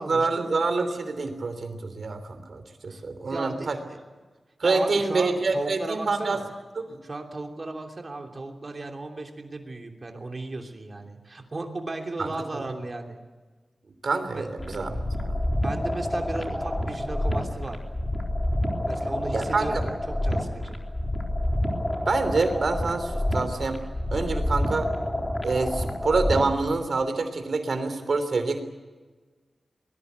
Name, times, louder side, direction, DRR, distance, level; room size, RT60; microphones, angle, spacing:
voice 1, 0.0-3.8 4.6-6.4 6.7-7.0 12.2-12.6 14.0-15.4 19.0-19.7 22.1-23.8 24.1-24.9 25.4-28.6, right 3 dB, 60° right, 9 dB, 3.2 m, -27 dB
voice 2, 2.9-4.0 4.6-6.5 7.0-13.2 14.3-14.5 15.6-17.8 18.8-20.8, right 2 dB, 35° right, 3 dB, 3.1 m, -35 dB
sound 1, 14.6-26.6, left 1 dB, 20° left, 3.5 m, -28 dB
23.5 x 20.0 x 8.2 m, 1.3 s
wide cardioid pair, 130°, 0 cm